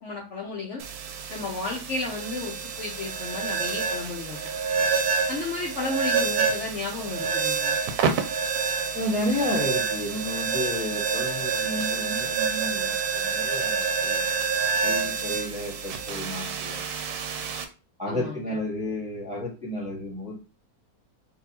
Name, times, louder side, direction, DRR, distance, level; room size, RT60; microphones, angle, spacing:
voice 1, 0.0-0.8 1.3-4.4 5.3-7.8 18.1-18.6, left 3 dB, 55° left, -2 dB, 1.0 m, -33 dB
sound 1, 0.8-17.6, right 5 dB, 85° right, 1.1 m, -28 dB
voice 2, 8.9-14.4 14.8-16.8 17.1-17.2 18.0-20.4, left 1 dB, 5° right, -6 dB, 1.3 m, -32 dB
3.8 x 2.7 x 2.8 m, 0.33 s
omnidirectional pair, 1.7 m